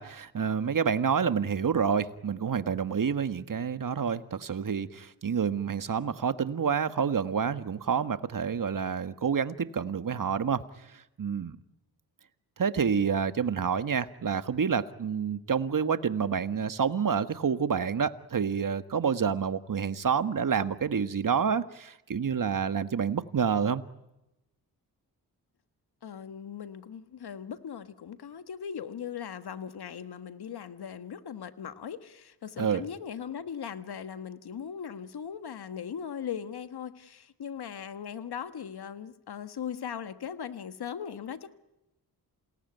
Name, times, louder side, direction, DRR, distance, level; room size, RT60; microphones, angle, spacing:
voice 1, 0.0-11.6 12.6-23.8 32.6-32.8, right 6 dB, 55° right, 11 dB, 1.6 m, -28 dB
voice 2, 26.0-41.5, left 8 dB, 70° left, 11 dB, 1.6 m, -39 dB
28.0 x 18.0 x 9.3 m, 0.92 s
cardioid pair, 50°, 40 cm